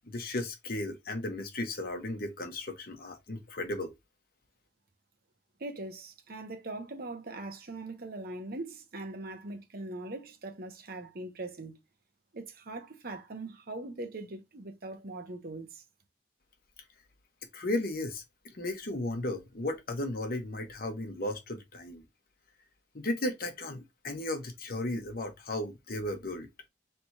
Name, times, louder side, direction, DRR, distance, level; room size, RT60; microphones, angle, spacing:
voice 1, 0.0-3.9 17.5-18.2 18.5-22.0 22.9-26.5, left 1 dB, 60° left, 1.0 m, -35 dB
voice 2, 5.6-11.8 12.3-15.8, right 2 dB, 60° right, 1.0 m, -41 dB
3.4 x 2.8 x 4.5 m
head